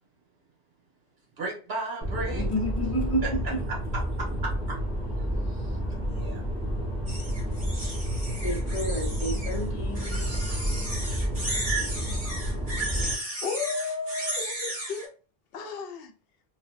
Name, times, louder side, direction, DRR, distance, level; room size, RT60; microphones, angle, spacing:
voice 1, 1.4-2.4 3.2-3.3 4.2-4.8 5.5-5.8 6.1-6.4, right 3 dB, 80° right, 1.5 m, -34 dB
sound 1, 2.0-13.1, equal, 5° right, 0.7 m, -30 dB
voice 2, 2.3-3.6 8.4-10.3, equal, 35° left, 0.8 m, -31 dB
sound 2, 7.1-9.6 9.9-15.1, right 1 dB, 35° right, 1.4 m, -34 dB
voice 3, 13.4-15.1 15.5-16.1, left 4 dB, 75° left, 0.8 m, -33 dB
3.0 x 2.2 x 2.5 m
omnidirectional pair, 1.0 m